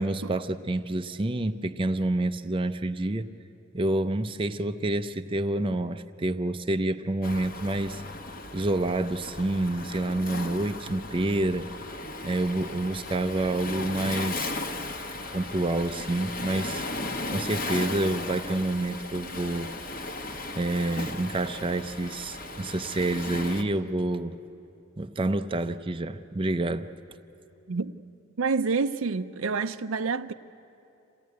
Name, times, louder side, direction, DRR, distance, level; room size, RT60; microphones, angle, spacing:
voice 1, 0.0-3.3 3.7-8.0 8.5-11.7 12.2-14.5 15.3-16.9 17.3-19.7 20.6-24.4 25.0-26.9, right 2 dB, 25° right, 0.5 m, -28 dB
Waves surf, 7.2-23.6, left 2 dB, 45° left, 1.2 m, -36 dB
voice 2, 28.4-30.3, right 4 dB, 70° right, 0.6 m, -28 dB
26.0 x 16.5 x 9.4 m
head